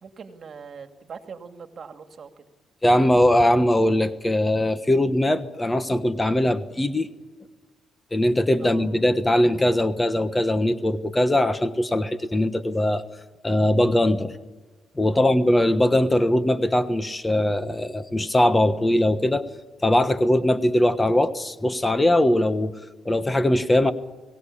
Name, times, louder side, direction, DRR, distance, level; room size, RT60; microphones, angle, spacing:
voice 1, 0.0-2.3 8.6-8.9 15.1-15.3, right 6 dB, 50° right, 7 dB, 2.4 m, -41 dB
voice 2, 2.8-7.1 8.1-13.0 13.4-14.4 15.0-19.5 19.8-22.7 23.0-23.9, left 1 dB, 15° left, 11 dB, 1.3 m, -21 dB
23.0 x 18.0 x 8.6 m, 1.3 s
cardioid pair, 90°, 0 cm